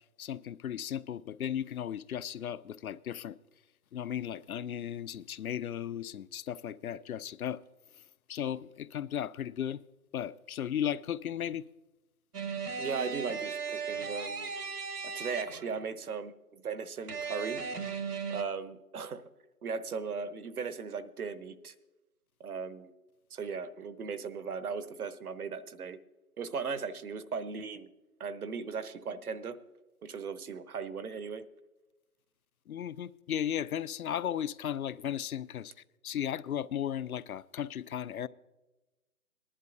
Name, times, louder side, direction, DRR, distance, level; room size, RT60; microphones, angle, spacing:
voice 1, 0.2-3.4 3.9-7.6 8.3-9.8 10.1-11.6 32.7-35.7 36.0-38.3, left 10 dB, 70° left, 0.5 m, -35 dB
sound 1, 12.3-15.8 17.1-18.4, right 5 dB, 85° right, 1.4 m, -37 dB
voice 2, 12.8-14.5 15.0-17.7 18.3-19.2 19.6-21.7 22.4-22.9 23.3-26.0 26.4-27.9 28.2-29.6 30.0-31.4, right 5 dB, 70° right, 1.0 m, -37 dB
19.0 x 11.0 x 2.6 m
hypercardioid pair, 165°, 45 cm